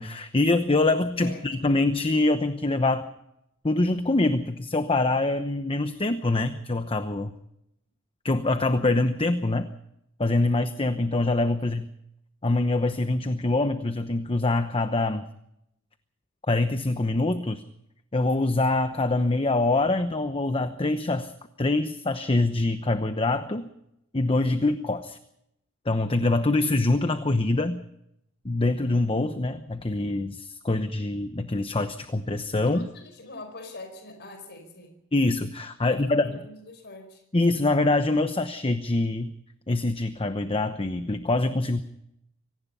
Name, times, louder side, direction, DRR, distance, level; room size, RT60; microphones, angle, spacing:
voice 1, 0.0-3.1 3.6-7.3 8.2-9.7 10.2-11.9 12.4-15.2 16.5-17.6 18.1-21.3 21.6-23.7 24.1-25.2 25.9-27.8 28.4-32.9 35.1-36.3 37.3-39.3 39.7-41.8, left 2 dB, 25° left, 9 dB, 0.9 m, -24 dB
voice 2, 1.2-1.7 11.6-11.7 32.6-35.0 35.8-37.2, left 2 dB, 55° left, 6 dB, 5.0 m, -44 dB
25.5 x 18.5 x 5.6 m, 0.80 s
head